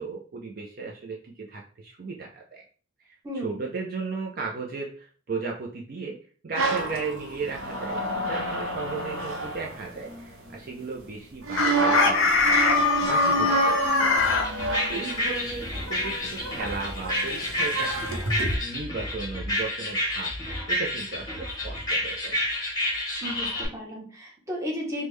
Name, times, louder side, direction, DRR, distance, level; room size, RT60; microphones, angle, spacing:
voice 1, 0.0-2.6 3.0-6.2 6.4-12.7 13.0-14.2 14.9-22.4, right 4 dB, 45° right, 0 dB, 0.4 m, -36 dB
voice 2, 3.2-3.6 23.2-25.1, equal, 15° right, -2 dB, 0.7 m, -34 dB
sound 1, 6.6-10.6 11.4-18.6, right 2 dB, 75° right, 0.7 m, -29 dB
Chicken rooster, 11.6-14.5, left 4 dB, 80° left, 0.5 m, -22 dB
sound 2, 14.2-23.7, left 1 dB, 20° left, 0.7 m, -30 dB
3.5 x 2.1 x 3.1 m, 0.41 s
head